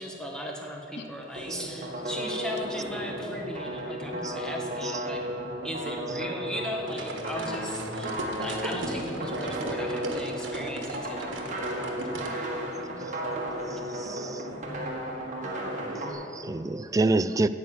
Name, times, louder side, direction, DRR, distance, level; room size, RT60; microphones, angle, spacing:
voice 1, 0.0-5.2 5.6-11.5, equal, 5° left, 1.4 m, -37 dB
sound 1, 1.4-16.1, equal, 40° right, 1.8 m, -34 dB
sound 2, 6.9-12.4, right 1 dB, 80° right, 1.3 m, -36 dB
voice 2, 12.3-14.0 14.5-14.7 15.5-15.6 16.0-16.2, left 3 dB, 65° left, 0.6 m, -53 dB
voice 3, 14.0-14.4 16.3-17.5, right 2 dB, 20° right, 0.3 m, -27 dB
9.4 x 7.4 x 8.5 m
head